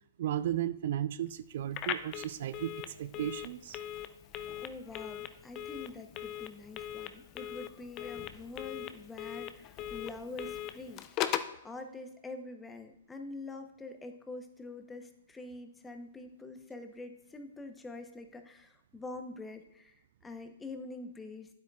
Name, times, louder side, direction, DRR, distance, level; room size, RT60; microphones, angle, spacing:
voice 1, 0.2-3.8, right 11 dB, 60° right, 15 dB, 0.3 m, -35 dB
Telephone, 1.7-11.6, left 11 dB, 30° left, 0.5 m, -40 dB
voice 2, 4.6-11.1 11.6-21.5, left 2 dB, 10° left, 6 dB, 0.8 m, -45 dB
9.5 x 8.0 x 2.4 m, 0.81 s
hypercardioid pair, 130°, 0 cm